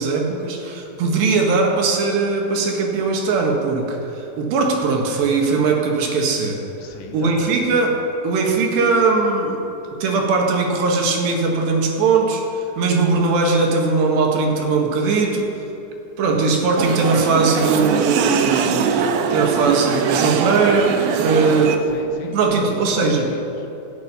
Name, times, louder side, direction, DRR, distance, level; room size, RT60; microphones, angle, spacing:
voice 1, 0.0-6.6 7.1-9.6 10.0-15.6 16.2-18.9 19.3-21.7 22.3-23.3, right 4 dB, 65° right, 1 dB, 3.6 m, -19 dB
voice 2, 6.8-7.7 21.3-23.7, left 5 dB, 85° left, 3 dB, 4.0 m, -35 dB
sound 1, 16.8-21.8, right 7 dB, 85° right, 2.1 m, -21 dB
26.5 x 9.1 x 5.6 m, 3.0 s
omnidirectional pair, 5.6 m